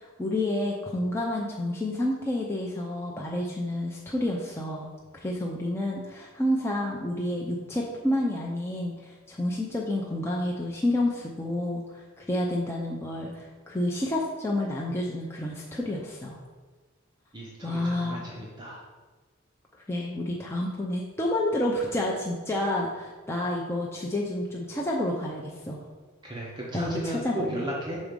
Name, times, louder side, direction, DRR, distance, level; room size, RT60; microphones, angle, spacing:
voice 1, 0.0-16.4 17.6-18.3 19.9-25.8 26.7-27.6, left 1 dB, 10° left, -3 dB, 0.5 m, -29 dB
voice 2, 17.3-18.8 26.2-28.0, right 1 dB, 20° right, -4 dB, 0.8 m, -34 dB
6.1 x 4.1 x 5.2 m, 1.3 s
head